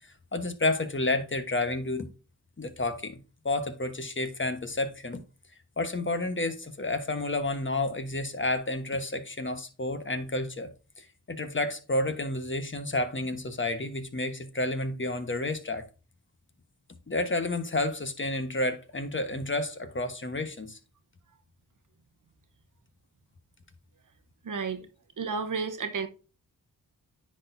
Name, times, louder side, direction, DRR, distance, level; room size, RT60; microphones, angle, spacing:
voice 1, 0.3-2.1 2.6-3.2 3.4-5.2 5.8-10.7 11.0-15.8 17.1-20.8, left 2 dB, 35° left, 1.2 m, -30 dB
voice 2, 24.4-24.8 25.2-26.1, right 5 dB, 60° right, 1.0 m, -31 dB
9.8 x 4.2 x 2.7 m
cardioid pair, 50°, 36 cm